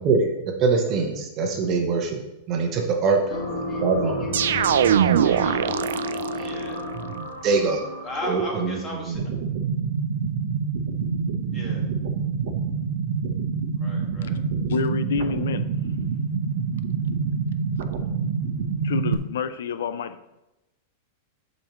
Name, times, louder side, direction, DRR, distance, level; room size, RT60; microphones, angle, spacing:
voice 1, 0.0-2.2 2.5-3.2 3.8-4.3 6.9-7.8 8.2-8.8 9.1-9.2, right 4 dB, 25° right, 2 dB, 1.0 m, -23 dB
sound 1, 3.3-8.9, left 1 dB, 40° left, 2.4 m, -31 dB
sound 2, 4.3-6.6, right 10 dB, 80° right, 0.4 m, -21 dB
voice 2, 4.7-6.8 8.0-9.2 11.5-11.8 13.8-14.4, left 1 dB, 10° left, -3 dB, 1.8 m, -37 dB
sound 3, 9.1-19.1, right 5 dB, 50° right, 1.0 m, -27 dB
voice 3, 14.7-15.7 18.8-20.2, left 6 dB, 85° left, 12 dB, 0.5 m, -28 dB
14.0 x 5.2 x 3.1 m, 0.96 s
supercardioid pair, 175°, 0 cm